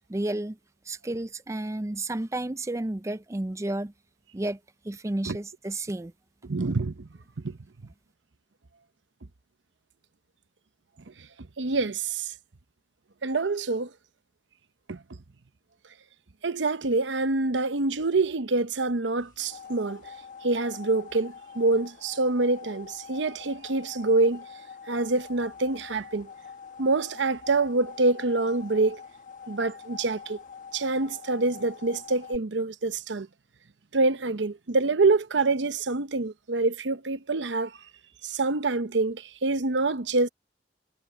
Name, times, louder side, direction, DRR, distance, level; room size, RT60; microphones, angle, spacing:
voice 1, 0.1-0.6 0.9-3.9 4.3-4.6 4.8-6.1, right 1 dB, 15° right, 0.5 m, -31 dB
voice 2, 6.4-7.1 7.4-7.5 11.6-12.3 13.2-13.9 14.9-15.0 16.4-20.0 20.4-24.4 24.9-26.3 26.8-29.0 29.5-30.4 30.7-33.3 33.9-37.7 38.2-40.3, right 3 dB, 85° right, 0.8 m, -26 dB
sound 1, 19.2-32.4, left 6 dB, 45° left, 1.2 m, -45 dB
head